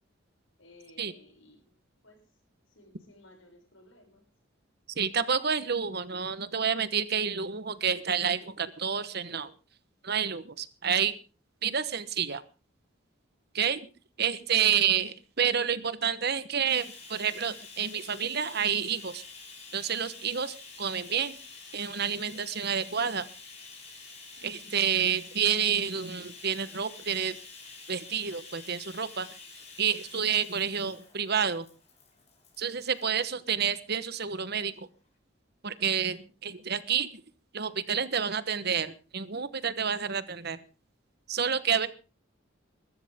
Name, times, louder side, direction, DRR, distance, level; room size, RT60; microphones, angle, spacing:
voice 1, 0.6-1.6 2.0-2.2 2.7-4.2 24.4-24.8, left 1 dB, 80° left, 3 dB, 7.0 m, -57 dB
voice 2, 5.0-9.5 10.0-11.1 11.6-12.4 13.5-13.9 14.2-19.2 19.7-21.3 21.7-23.2 24.4-27.4 27.9-29.3 29.8-31.6 32.6-34.9 35.6-37.2 37.5-40.6 41.3-41.9, right 7 dB, 55° right, 14 dB, 1.2 m, -29 dB
Bathtub (filling or washing), 16.7-33.3 34.2-34.4 34.7-34.8, left 4 dB, 35° left, 5.6 m, -48 dB
21.5 x 13.5 x 3.7 m, 0.34 s
head